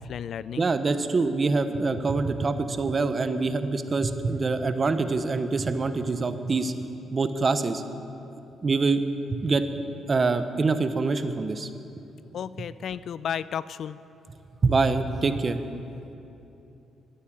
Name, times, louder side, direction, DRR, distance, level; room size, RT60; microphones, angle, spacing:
voice 1, 0.0-0.7 12.3-14.0, left 8 dB, 65° left, 17 dB, 0.4 m, -33 dB
voice 2, 0.6-6.7 7.1-7.8 8.6-9.0 9.3-9.6 10.1-11.7 14.6-15.6, right 3 dB, 35° right, 10 dB, 0.8 m, -25 dB
12.0 x 9.8 x 9.0 m, 2.8 s
cardioid pair, 90°, 0 cm